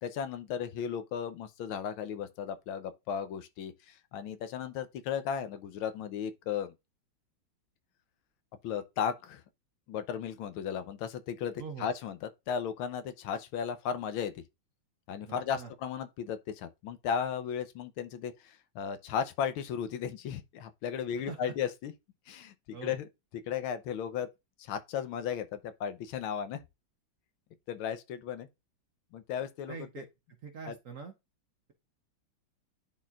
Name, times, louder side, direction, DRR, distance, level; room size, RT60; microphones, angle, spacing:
voice 1, 0.0-6.7 8.6-9.4 9.9-14.4 15.1-21.9 22.3-23.1 23.5-24.3 24.6-26.6 27.7-28.5 29.1-30.0 30.7-30.8, left 8 dB, 80° left, 1.6 m, -35 dB
voice 2, 15.3-15.7 21.3-21.4 22.7-23.0 29.7-30.0 30.4-31.1, right 5 dB, 55° right, 1.0 m, -43 dB
10.5 x 4.2 x 2.4 m
omnidirectional pair, 2.2 m